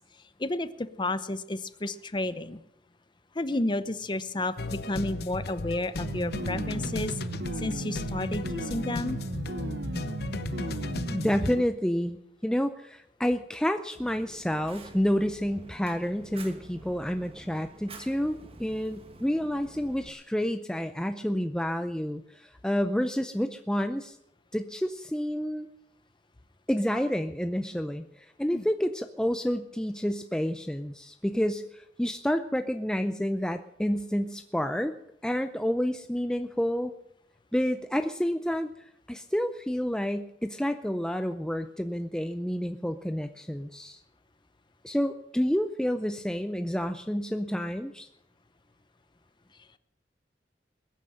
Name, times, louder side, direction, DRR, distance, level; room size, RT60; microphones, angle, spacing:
voice 1, 0.4-2.6 3.3-7.2 7.6-9.2 28.5-28.7, left 2 dB, 25° left, 13 dB, 0.8 m, -31 dB
sound 1, 4.6-11.6, left 2 dB, 65° left, 0.9 m, -36 dB
sound 2, 6.0-11.6, right 2 dB, 70° right, 0.8 m, -35 dB
voice 2, 11.1-12.2 12.4-24.2 24.5-25.7 26.7-34.9 35.2-36.9 37.5-38.7 39.1-44.0 44.8-48.1, equal, 5° left, 8 dB, 0.5 m, -29 dB
Fire, 14.0-20.1, right 2 dB, 35° right, 1.4 m, -49 dB
21.0 x 9.3 x 6.4 m, 0.81 s
head